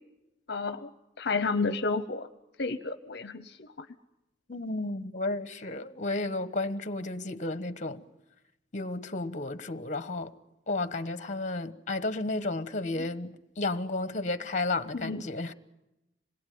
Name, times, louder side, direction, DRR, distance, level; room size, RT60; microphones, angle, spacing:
voice 1, 0.5-0.9 1.2-2.3 2.6-3.9 15.0-15.2, left 4 dB, 60° left, 0.9 m, -31 dB
voice 2, 4.5-8.0 8.7-10.3 10.7-15.5, left 2 dB, 40° left, 1.3 m, -32 dB
27.0 x 21.0 x 9.4 m
head